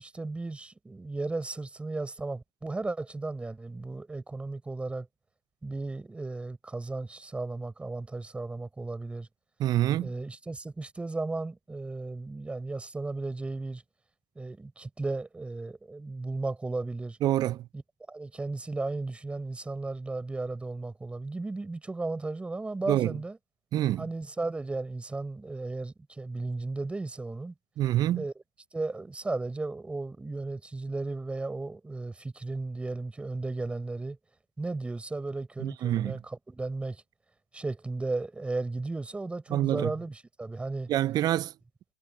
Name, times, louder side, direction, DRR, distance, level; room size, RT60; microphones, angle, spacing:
voice 1, 0.0-5.1 5.6-9.3 10.0-13.8 14.4-17.2 17.7-17.8 18.1-23.4 24.0-27.5 28.1-28.3 28.7-34.2 34.6-37.0 37.5-40.9, right 3 dB, 5° right, 5.7 m, -35 dB
voice 2, 9.6-10.1 17.2-17.7 22.9-23.2 23.7-24.1 27.8-28.3 35.6-36.2 39.5-39.9 40.9-41.5, right 13 dB, 20° right, 0.8 m, -26 dB
hypercardioid pair, 130°, 18 cm